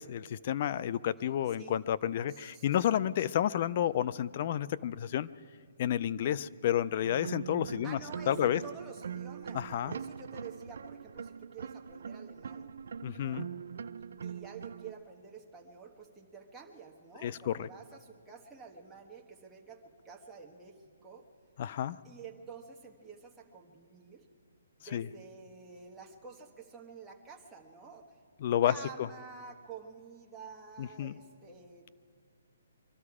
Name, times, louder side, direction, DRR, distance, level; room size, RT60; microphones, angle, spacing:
voice 1, 0.0-5.3 5.8-8.0 8.3-8.6 9.5-10.0 13.0-13.5 17.2-17.7 21.6-22.0 24.9-25.1 28.4-28.7 30.8-31.2, left 11 dB, 40° left, 17 dB, 0.4 m, -30 dB
voice 2, 2.3-2.6 7.8-12.7 13.2-13.5 14.2-21.2 22.0-24.3 24.8-28.1 28.6-31.9, right 5 dB, 5° right, -1 dB, 1.3 m, -49 dB
sound 1, 7.0-14.9, right 7 dB, 65° right, 0.4 m, -42 dB
24.0 x 12.5 x 4.9 m, 2.1 s
hypercardioid pair, 160°, 0 cm